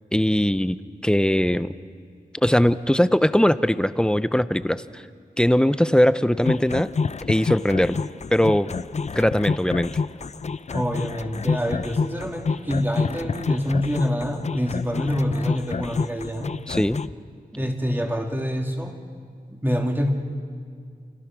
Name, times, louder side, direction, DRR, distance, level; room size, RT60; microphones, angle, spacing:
voice 1, 0.1-1.7 2.4-5.0 5.4-6.9 7.3-8.0 8.3-8.7 9.1-9.9 16.7-17.0, equal, 5° left, 13 dB, 0.7 m, -20 dB
sound 1, 6.5-17.1, left 4 dB, 45° left, 0.6 m, -28 dB
voice 2, 10.7-16.5 17.5-18.9 19.5-20.1, equal, 15° right, 1 dB, 2.9 m, -26 dB
29.0 x 29.0 x 6.2 m, 2.1 s
wide cardioid pair, 115°, 15 cm